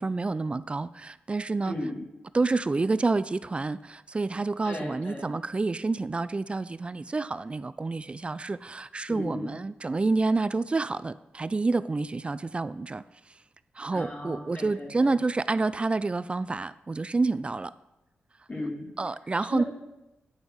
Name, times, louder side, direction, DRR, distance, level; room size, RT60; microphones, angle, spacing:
voice 1, 0.0-1.7 2.3-13.0 13.8-17.7 19.0-19.6, right 3 dB, 30° right, 16 dB, 0.3 m, -28 dB
voice 2, 1.6-2.0 4.6-5.3 9.1-9.5 13.9-15.2 18.5-18.9 19.5-19.6, left 1 dB, 35° left, 0 dB, 2.4 m, -35 dB
9.6 x 5.2 x 6.3 m, 0.97 s
cardioid pair, 70°, 4 cm